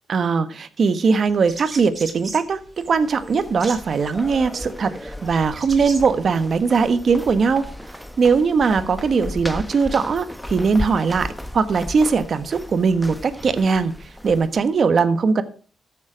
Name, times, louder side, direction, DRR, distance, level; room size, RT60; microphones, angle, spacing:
voice 1, 0.1-2.6 2.9-7.6 8.2-11.3 11.5-13.9 14.2-15.4, right 5 dB, 50° right, 11 dB, 1.3 m, -20 dB
sound 1, 1.3-7.2, right 3 dB, 30° right, 2.9 m, -38 dB
sound 2, 2.6-14.8, left 1 dB, 5° left, 1.0 m, -36 dB
14.0 x 7.3 x 5.1 m, 0.41 s
cardioid pair, 105°, 0 cm